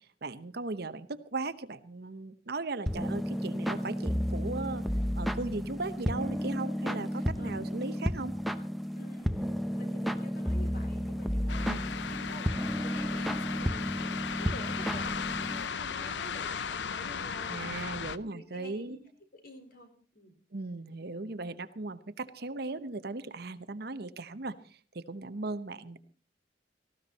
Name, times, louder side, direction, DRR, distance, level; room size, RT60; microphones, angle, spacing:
voice 1, 0.0-4.8 5.2-8.3 11.6-11.8 17.5-19.0 20.5-26.0, right 3 dB, 60° right, 12 dB, 1.0 m, -38 dB
sound 1, 2.9-15.7, equal, ahead, 0.9 m, -32 dB
voice 2, 6.8-8.0 8.9-17.8 18.2-19.0 19.3-20.4, left 1 dB, 55° left, 5 dB, 4.6 m, -48 dB
sound 2, 11.5-18.2, left 6 dB, 75° left, 0.7 m, -36 dB
18.5 x 15.5 x 4.2 m, 0.38 s
head